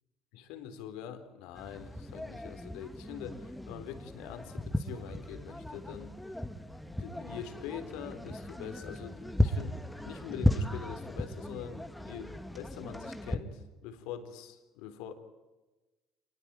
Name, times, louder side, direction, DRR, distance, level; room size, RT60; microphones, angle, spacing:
voice 1, 0.3-6.1 6.8-9.8 10.0-15.1, left 9 dB, 75° left, 8 dB, 3.9 m, -44 dB
sound 1, 1.5-13.4, left 1 dB, 5° left, 2.4 m, -35 dB
27.0 x 21.5 x 9.0 m, 1.1 s
hypercardioid pair, 70°, 0 cm